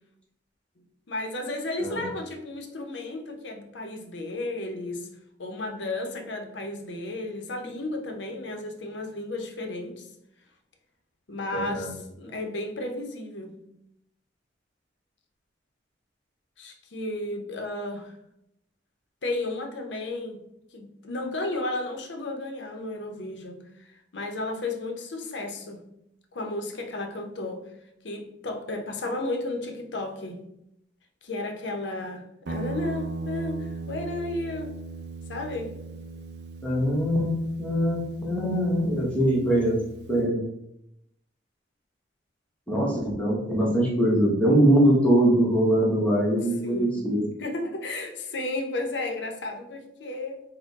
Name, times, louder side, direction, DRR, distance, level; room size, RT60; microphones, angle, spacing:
voice 1, 1.1-5.1 5.4-10.1 11.3-13.5 16.6-18.2 19.2-20.4 20.7-23.6 24.1-25.8 26.3-27.7 28.0-30.4 31.2-34.7 35.3-35.8 46.6-47.0 47.4-50.4, left 2 dB, 75° left, 4 dB, 0.7 m, -33 dB
voice 2, 11.5-11.9 36.6-39.8 40.1-40.4 42.7-47.3, right 1 dB, 5° left, -4 dB, 1.0 m, -22 dB
Guitar, 32.5-40.3, right 3 dB, 60° right, 0.4 m, -38 dB
4.2 x 2.1 x 4.0 m, 0.79 s
head